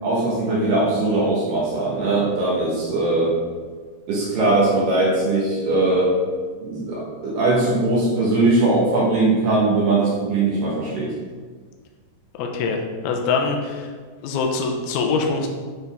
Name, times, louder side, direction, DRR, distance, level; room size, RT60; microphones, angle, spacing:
voice 1, 0.0-3.3 4.1-6.1 6.6-11.1, right 2 dB, 70° right, -5 dB, 2.5 m, -20 dB
voice 2, 12.4-13.9 14.2-15.5, left 4 dB, 85° left, 2 dB, 2.5 m, -23 dB
9.1 x 4.0 x 3.5 m, 1.5 s
omnidirectional pair, 4.5 m